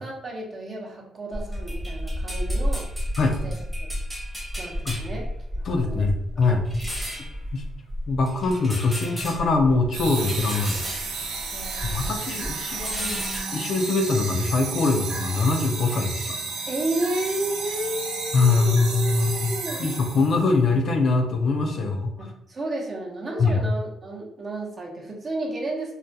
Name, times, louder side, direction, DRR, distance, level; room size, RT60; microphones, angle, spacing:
voice 1, 0.0-2.9 3.4-3.9 4.6-5.3 5.6-6.1 6.3-6.4 7.1-7.3 11.5-13.0 16.7-19.9 22.2-25.9, right 1 dB, 40° right, -1 dB, 0.7 m, -32 dB
sound 1, 1.3-12.2 12.4-13.4, equal, 5° right, 0.8 m, -32 dB
voice 2, 5.7-6.6 7.5-7.6 8.1-10.8 11.8-13.2 13.5-16.4 18.3-22.1 23.4-23.6, left 3 dB, 60° left, 3 dB, 0.4 m, -23 dB
sound 2, 9.9-20.5, right 4 dB, 85° right, 0.5 m, -32 dB
2.3 x 2.1 x 2.6 m, 0.76 s
cardioid pair, 90°, 0 cm